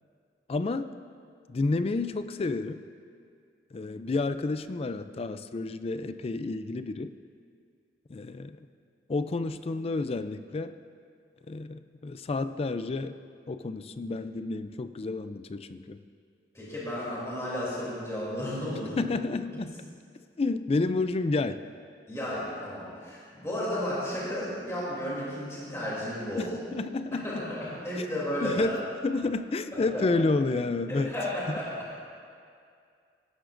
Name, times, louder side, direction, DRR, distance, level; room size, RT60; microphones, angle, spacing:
voice 1, 0.5-0.9 1.5-2.8 3.7-7.1 8.1-8.7 9.1-10.7 11.5-13.2 13.5-16.0 19.0-19.7 20.4-21.6 26.4-27.5 27.9-28.1 28.4-31.6, left 3 dB, 35° left, 11 dB, 0.4 m, -30 dB
voice 2, 16.5-19.2 22.1-26.6 27.2-28.7 29.7-30.0 30.9-31.7, left 1 dB, 15° left, -8 dB, 2.9 m, -33 dB
18.0 x 11.5 x 2.6 m, 2.3 s
head